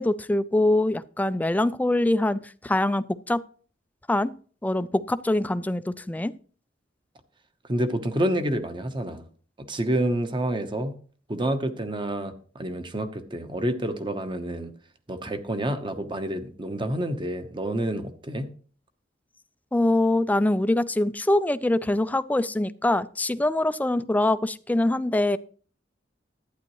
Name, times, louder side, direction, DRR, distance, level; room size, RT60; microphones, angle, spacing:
voice 1, 0.0-3.4 4.1-4.3 4.6-6.3 19.7-25.4, left 1 dB, 10° left, 15 dB, 0.3 m, -24 dB
voice 2, 7.7-9.2 9.6-10.9 11.3-14.7 15.1-18.5, right 1 dB, 25° right, 9 dB, 0.9 m, -28 dB
11.5 x 9.3 x 3.1 m, 0.42 s
head